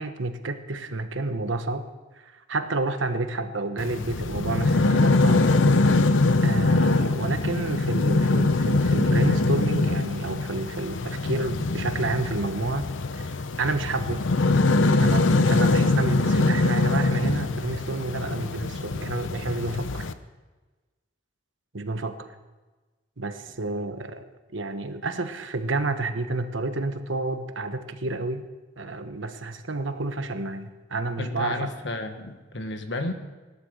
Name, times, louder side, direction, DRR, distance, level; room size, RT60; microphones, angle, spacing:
voice 1, 0.0-1.9 2.3-5.5 5.9-6.1 6.4-12.9 13.2-14.3 15.0-20.1 21.7-22.2 23.2-24.3 24.5-28.4 28.8-31.7, right 2 dB, 85° right, 8 dB, 1.2 m, -30 dB
sound 1, 3.8-20.1, left 3 dB, 85° left, 0.8 m, -23 dB
voice 2, 31.2-33.1, left 2 dB, 65° left, 7 dB, 1.5 m, -32 dB
18.0 x 12.0 x 6.6 m, 1.3 s
head